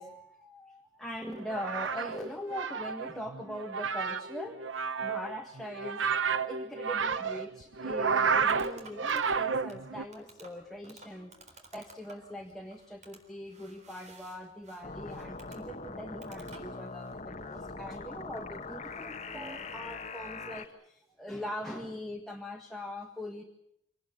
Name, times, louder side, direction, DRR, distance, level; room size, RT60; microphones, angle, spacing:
voice 1, 0.0-6.1 6.5-23.4, equal, ahead, 1 dB, 1.7 m, -42 dB
sound 1, 1.4-10.0, right 5 dB, 80° right, 0.9 m, -31 dB
sound 2, 7.7-17.2, right 3 dB, 40° right, 3.9 m, -56 dB
sound 3, 14.8-20.7, left 3 dB, 35° left, 1.4 m, -42 dB
25.0 x 18.5 x 8.6 m, 0.78 s
head